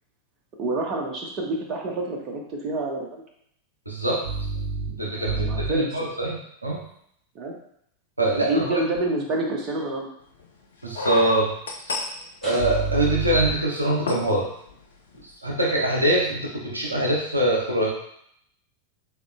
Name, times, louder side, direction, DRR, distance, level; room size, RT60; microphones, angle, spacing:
voice 1, 0.6-3.2 5.0-6.0 7.3-7.6 8.4-10.1, right 2 dB, 35° right, 0 dB, 0.7 m, -28 dB
voice 2, 3.9-6.8 8.2-8.6 10.8-11.5 12.4-14.5 15.4-17.9, right 1 dB, 85° right, -3 dB, 0.6 m, -23 dB
sound 1, 10.4-10.5 10.9-13.1 13.4-13.6 14.1-14.3 14.7-14.8 15.1-15.2, left 3 dB, 65° left, 0.5 m, -31 dB
sound 2, 12.4-13.0 16.2-16.3, equal, 15° left, 1.4 m, -38 dB
3.7 x 2.9 x 2.3 m, 0.70 s
figure-of-eight pair, 90°, 0 cm